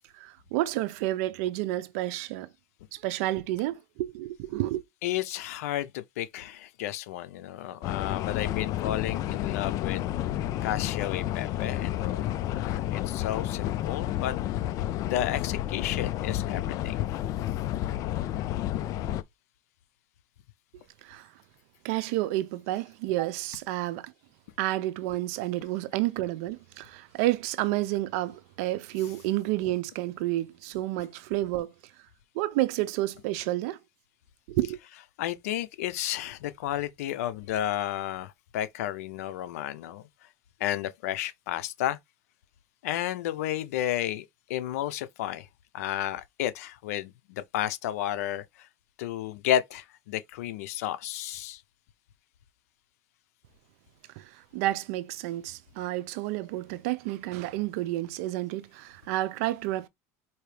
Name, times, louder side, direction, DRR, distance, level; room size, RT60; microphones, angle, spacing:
voice 1, 0.2-2.5 2.9-4.8 21.0-21.3 21.8-24.1 24.6-31.7 32.4-33.8 34.5-34.8 54.2-59.9, right 16 dB, 70° right, 0.6 m, -30 dB
voice 2, 5.0-10.1 10.6-14.3 15.0-17.0 35.2-40.0 40.6-42.0 42.8-45.5 45.7-48.7 49.0-51.6, left 12 dB, 90° left, 0.6 m, -32 dB
sound 1, 7.8-19.2, left 13 dB, 45° left, 0.4 m, -30 dB
4.6 x 2.7 x 3.3 m
supercardioid pair, 130°, 8 cm